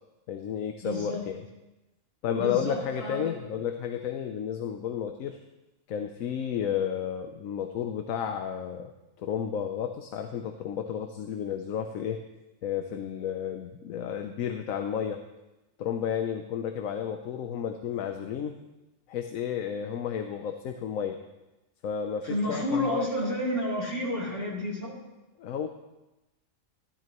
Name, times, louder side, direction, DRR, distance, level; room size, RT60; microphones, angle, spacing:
voice 1, 0.3-1.4 2.2-5.4 5.9-8.9 9.2-12.2 12.6-15.2 15.8-18.6 19.1-21.2 21.8-23.1 25.4-25.7, left 8 dB, 85° left, 6 dB, 1.1 m, -32 dB
voice 2, 0.8-1.2 2.3-3.3 22.2-24.9, left 1 dB, 65° left, -6 dB, 3.8 m, -30 dB
14.5 x 12.5 x 3.0 m, 1.0 s
omnidirectional pair, 1.4 m